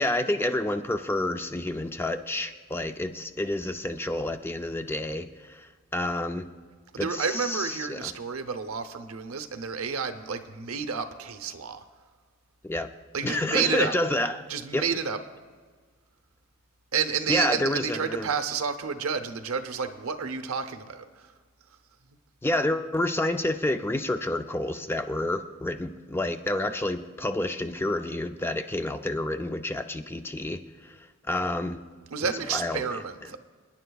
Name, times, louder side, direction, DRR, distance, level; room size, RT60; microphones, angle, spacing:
voice 1, 0.0-5.7 5.9-6.5 7.0-8.1 12.6-12.9 13.2-14.4 14.7-14.9 17.3-18.3 22.4-30.6 31.3-31.8 32.5-32.8, left 1 dB, 10° left, 0.4 m, -29 dB
voice 2, 6.9-11.8 13.1-13.9 14.5-15.2 16.9-21.3 32.1-33.4, right 6 dB, 85° right, 0.8 m, -30 dB
27.5 x 10.0 x 2.3 m
head